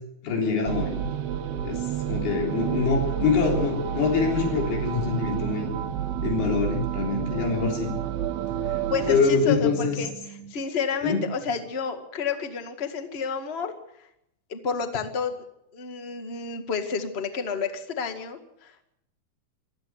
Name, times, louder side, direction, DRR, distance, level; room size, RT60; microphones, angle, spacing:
voice 1, 0.2-1.1 1.6-5.7 6.2-7.9 9.1-10.0 11.0-11.2, left 5 dB, 80° left, 0 dB, 5.7 m, -25 dB
sound 1, 0.7-9.2, right 10 dB, 85° right, 3.0 m, -30 dB
sound 2, 2.4-10.5, right 9 dB, 65° right, 2.6 m, -45 dB
voice 2, 8.9-13.7 14.5-15.4 15.7-18.7, left 6 dB, 35° left, 6 dB, 1.0 m, -30 dB
23.5 x 14.5 x 8.1 m, 0.80 s
omnidirectional pair, 4.4 m